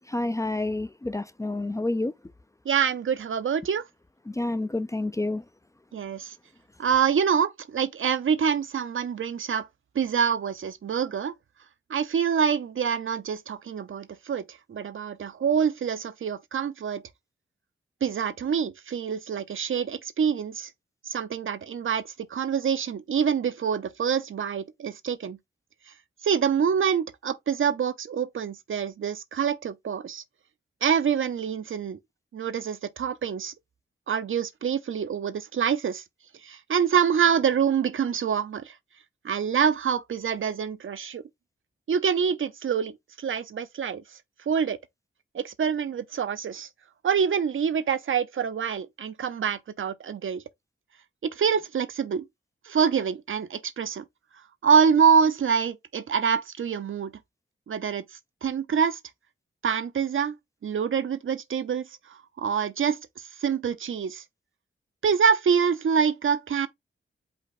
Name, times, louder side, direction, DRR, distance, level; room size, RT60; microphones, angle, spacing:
voice 1, 0.0-2.1 4.3-5.4, left 2 dB, 15° left, 0.3 m, -29 dB
voice 2, 2.7-3.8 5.9-6.3 6.8-9.7 9.9-11.3 11.9-17.0 18.0-20.7 21.1-22.0 22.3-25.4 26.2-30.2 30.8-32.0 32.3-33.5 34.1-36.0 36.4-38.7 39.2-41.2 41.9-42.9 43.2-44.0 44.5-44.8 45.3-46.7 47.0-50.4 51.2-52.2 52.6-54.0 54.6-57.1 57.7-58.0 58.4-59.0 59.6-60.4 60.6-61.9 62.4-63.0 63.4-64.2 65.0-66.7, right 7 dB, 75° right, 0.6 m, -26 dB
5.1 x 2.2 x 4.1 m
wide cardioid pair, 80°, 21 cm